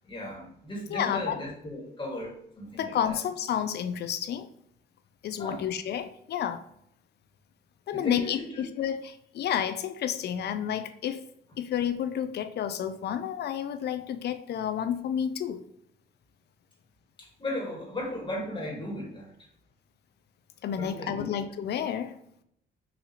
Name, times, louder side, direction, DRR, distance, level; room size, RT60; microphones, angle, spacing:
voice 1, 0.0-3.2 5.4-5.7 7.9-8.6 17.2-19.3 20.8-21.4, left 1 dB, 25° left, -2 dB, 1.4 m, -36 dB
voice 2, 0.9-1.4 2.8-4.5 5.2-6.7 7.9-11.2 11.6-15.6 20.6-22.2, left 9 dB, 55° left, 11 dB, 0.4 m, -30 dB
4.1 x 2.6 x 2.8 m, 0.74 s
cardioid pair, 90°, 20 cm